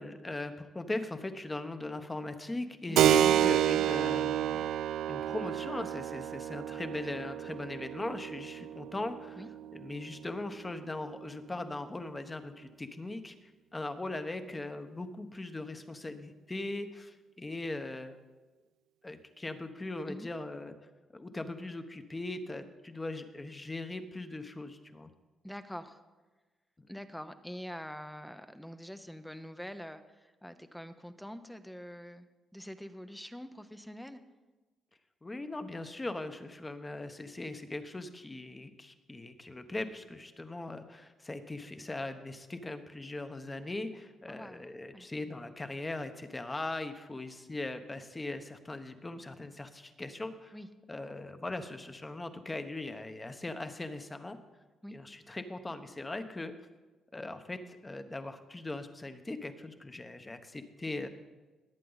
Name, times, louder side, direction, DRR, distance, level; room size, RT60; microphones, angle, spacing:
voice 1, 0.0-4.6 5.1-9.4 9.7-18.2 19.0-20.7 21.1-25.1 26.8-26.9 35.2-50.5 50.9-54.4 54.9-56.5 57.1-61.1, left 2 dB, 20° left, 9 dB, 1.0 m, -40 dB
Keyboard (musical), 3.0-11.2, right 11 dB, 80° right, 0.3 m, -30 dB
voice 2, 25.4-26.0 26.9-32.3 32.5-34.2 44.3-45.1 50.5-50.7 54.8-55.0, equal, 5° left, 9 dB, 0.7 m, -45 dB
19.5 x 8.3 x 4.0 m, 1.2 s
cardioid pair, 90°, 0 cm